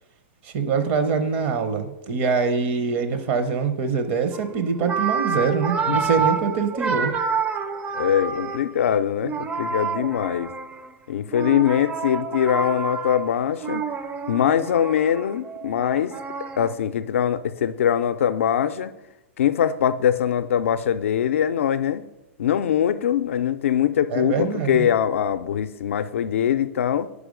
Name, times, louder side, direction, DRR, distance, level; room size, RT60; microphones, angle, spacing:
voice 1, 0.4-7.1 24.1-24.9, right 5 dB, 50° right, 9 dB, 0.7 m, -24 dB
sound 1, 4.3-4.5 4.8-8.8 9.2-10.9 11.3-16.8, right 5 dB, 20° right, 0.4 m, -28 dB
voice 2, 8.0-10.5 11.1-13.8 14.3-16.1 16.6-18.9 19.4-22.0 22.4-27.1, left 9 dB, 75° left, 12 dB, 0.4 m, -22 dB
4.9 x 4.7 x 5.1 m, 0.97 s
hypercardioid pair, 120°, 7 cm